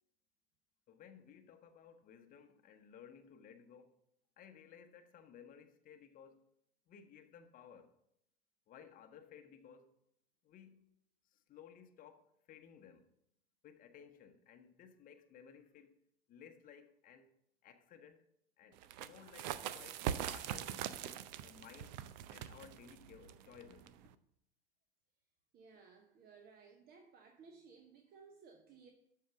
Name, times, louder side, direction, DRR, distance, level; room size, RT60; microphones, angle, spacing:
voice 1, 0.9-4.0 4.4-6.4 6.9-7.9 8.7-9.9 10.4-10.9 11.2-13.1 13.6-16.0 16.3-17.3 17.6-18.3 18.6-22.0 22.3-23.9, left 8 dB, 25° left, 1.0 m, -58 dB
sound 1, 18.8-24.1, right 10 dB, 45° right, 0.6 m, -43 dB
voice 2, 25.5-28.9, right 5 dB, 30° right, 1.1 m, -59 dB
12.5 x 4.7 x 6.0 m
figure-of-eight pair, 90°, 30 cm